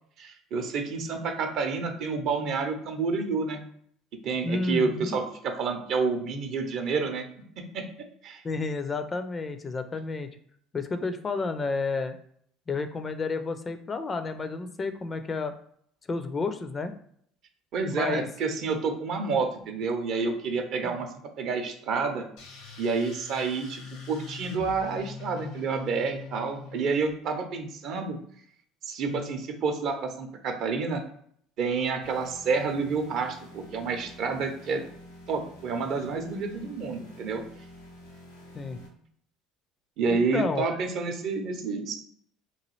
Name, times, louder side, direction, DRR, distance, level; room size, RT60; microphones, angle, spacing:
voice 1, 0.2-3.6 4.2-7.3 7.6-7.9 8.2-8.4 17.7-21.1 21.4-22.2 22.8-23.8 24.1-28.2 28.8-31.0 31.6-34.8 35.3-37.4 40.0-42.0, right 4 dB, 55° right, 5 dB, 0.5 m, -29 dB
voice 2, 4.4-5.2 8.4-10.3 10.7-12.2 12.7-15.6 16.1-16.9 17.9-18.3 20.8-21.0 29.1-29.4 38.5-38.8 40.1-40.8, left 3 dB, 30° left, 9 dB, 0.4 m, -31 dB
sound 1, 22.4-27.1, left 5 dB, 70° left, 0.7 m, -43 dB
sound 2, 32.0-38.9, left 1 dB, 85° left, 1.1 m, -49 dB
2.9 x 2.3 x 3.0 m, 0.65 s
hypercardioid pair, 65°, 0 cm